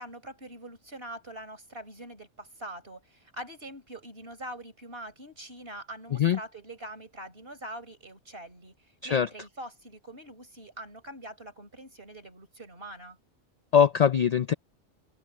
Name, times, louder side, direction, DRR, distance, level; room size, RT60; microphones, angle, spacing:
voice 1, 0.0-8.7 9.0-13.2, right 1 dB, 55° right, 5.4 m, -43 dB
voice 2, 13.7-14.5, left 8 dB, 60° left, 0.4 m, -22 dB
omnidirectional pair, 1.2 m